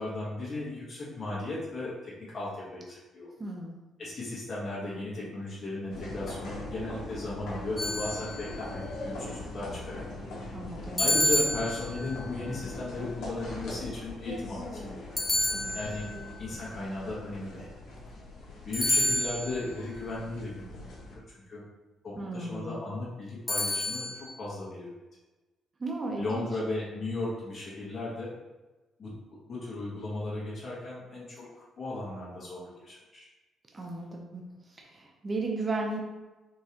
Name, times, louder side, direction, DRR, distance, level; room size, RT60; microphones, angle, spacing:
voice 1, 0.0-3.3 4.0-10.0 11.0-15.0 15.7-16.1 16.4-17.7 18.6-21.6 22.0-24.9 26.2-28.3 29.0-33.2, left 2 dB, 40° left, -8 dB, 1.5 m, -36 dB
voice 2, 3.4-3.8 10.5-11.0 15.5-15.8 16.1-16.4 22.2-22.8 25.8-26.5 33.7-34.4 34.7-36.0, right 2 dB, 30° right, 0 dB, 0.7 m, -35 dB
sound 1, 5.9-21.2, left 2 dB, 75° left, 1.1 m, -41 dB
sound 2, 7.8-8.7 11.0-12.2 15.2-16.2 18.7-19.7 23.5-24.3, left 1 dB, 15° left, 1.1 m, -29 dB
4.5 x 3.2 x 2.9 m, 1.1 s
cardioid pair, 90°, 0 cm